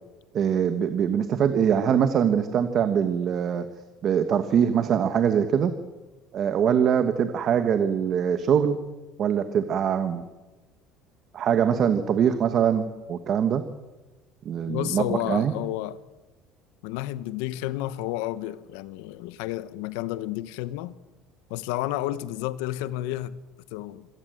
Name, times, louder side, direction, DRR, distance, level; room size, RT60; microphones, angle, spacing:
voice 1, 0.3-3.7 4.0-5.7 6.3-8.8 9.2-10.3 11.3-13.6 14.4-15.5, right 8 dB, 35° right, 1.1 m, -23 dB
voice 2, 14.7-16.0 16.8-21.0 21.5-23.4 23.7-24.1, left 15 dB, 85° left, 1.0 m, -31 dB
26.5 x 17.0 x 7.8 m
cardioid pair, 175°, 0 cm